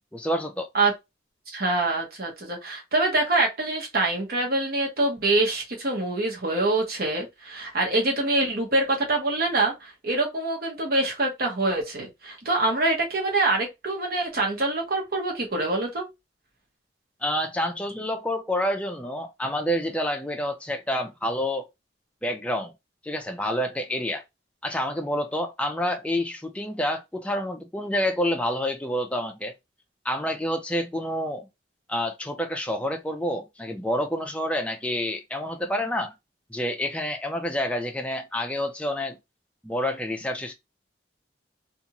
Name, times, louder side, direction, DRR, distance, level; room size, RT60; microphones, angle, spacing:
voice 1, 0.1-0.7 17.2-21.7 22.2-22.7 23.0-24.2 24.6-29.5 30.0-31.5 31.9-36.1 36.5-39.2 39.6-40.5, equal, 5° left, 0.4 m, -28 dB
voice 2, 1.5-16.1, right 2 dB, 55° right, 1.0 m, -25 dB
2.6 x 2.4 x 2.9 m
head